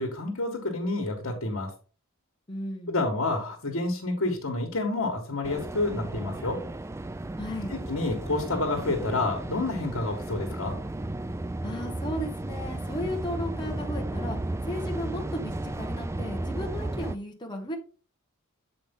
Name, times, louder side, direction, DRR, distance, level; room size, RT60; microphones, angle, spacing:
voice 1, 0.0-1.7 2.9-6.6 7.7-10.8, left 2 dB, 75° left, 4 dB, 1.6 m, -29 dB
voice 2, 2.5-2.9 7.4-7.7 11.6-17.8, left 1 dB, 20° left, 1 dB, 1.2 m, -35 dB
sound 1, 5.4-17.2, right 2 dB, 15° right, 0.3 m, -34 dB
8.0 x 5.0 x 3.8 m, 0.38 s
head